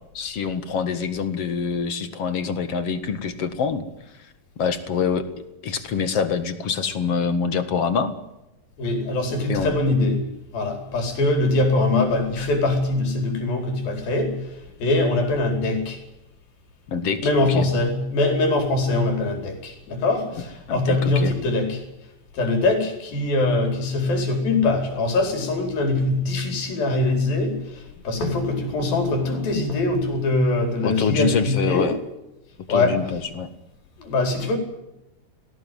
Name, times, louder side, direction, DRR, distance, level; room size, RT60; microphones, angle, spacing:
voice 1, 0.1-3.8 4.6-5.3 5.6-8.1 9.5-9.7 16.9-17.7 20.7-21.3 30.8-32.0 32.7-33.5, left 6 dB, 50° left, 11 dB, 2.2 m, -25 dB
voice 2, 8.8-10.3 10.5-14.4 14.8-16.0 17.2-21.8 22.3-27.6 28.0-31.9 32.7-33.0 34.0-34.6, left 2 dB, 75° left, 5 dB, 6.2 m, -22 dB
19.5 x 18.0 x 9.3 m, 0.92 s
omnidirectional pair, 4.2 m